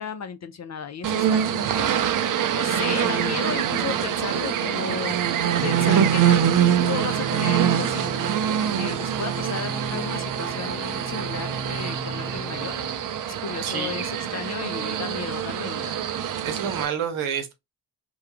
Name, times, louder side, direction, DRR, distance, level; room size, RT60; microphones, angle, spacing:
voice 1, 0.0-2.0 2.5-5.1 5.6-8.3 8.8-12.7 13.4-16.0, left 6 dB, 35° left, 0.4 m, -34 dB
sound 1, 1.0-16.9, right 9 dB, 45° right, 0.4 m, -24 dB
sound 2, 5.6-13.1, right 2 dB, 25° right, 0.8 m, -36 dB
voice 2, 13.6-14.4 16.4-17.5, right 7 dB, 75° right, 0.9 m, -29 dB
2.3 x 2.2 x 2.9 m
supercardioid pair, 45°, 50 cm